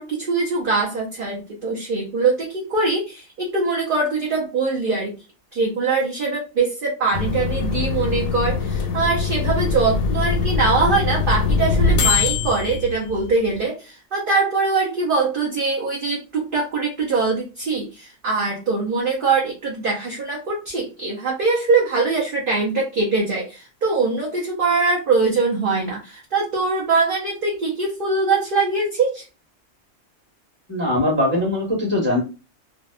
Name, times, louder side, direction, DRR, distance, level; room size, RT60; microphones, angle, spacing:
voice 1, 0.0-5.1 5.5-29.2, right 4 dB, 55° right, -2 dB, 0.7 m, -22 dB
sound 1, 7.1-13.6, left 5 dB, 85° left, 1.0 m, -22 dB
voice 2, 30.7-32.2, left 1 dB, 10° right, -4 dB, 1.1 m, -21 dB
2.6 x 2.2 x 2.4 m, 0.31 s
omnidirectional pair, 1.4 m